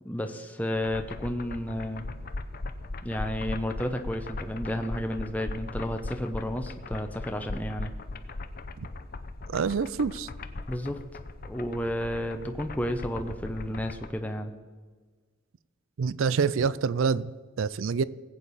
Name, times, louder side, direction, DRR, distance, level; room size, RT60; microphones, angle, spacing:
voice 1, 0.0-2.0 3.0-7.9 10.7-11.0 11.4-14.5, equal, 5° left, 0.7 m, -32 dB
sound 1, 0.7-14.1, left 2 dB, 45° left, 0.7 m, -39 dB
voice 2, 9.5-10.3 16.0-18.0, right 5 dB, 70° right, 0.4 m, -27 dB
19.5 x 8.6 x 4.1 m
head